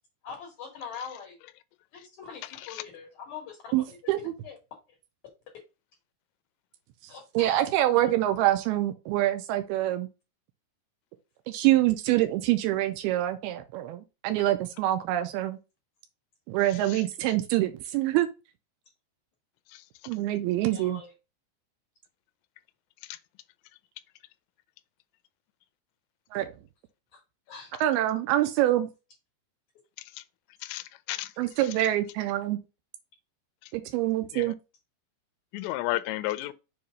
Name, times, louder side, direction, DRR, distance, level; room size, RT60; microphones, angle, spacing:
voice 1, 0.2-1.3 1.9-4.1 4.4-4.5 7.1-7.6 20.7-21.1 27.5-27.7, left 6 dB, 60° left, 2.1 m, -42 dB
voice 2, 2.4-2.8 30.6-31.3 34.3-34.5 35.5-36.5, left 17 dB, 85° left, 2.8 m, -32 dB
voice 3, 3.7-4.3 7.3-10.1 11.5-15.6 16.5-18.3 20.1-21.0 26.3-26.5 27.8-28.9 31.4-32.6 33.7-34.6, right 14 dB, 90° right, 2.3 m, -25 dB
7.0 x 2.9 x 5.0 m
omnidirectional pair, 5.1 m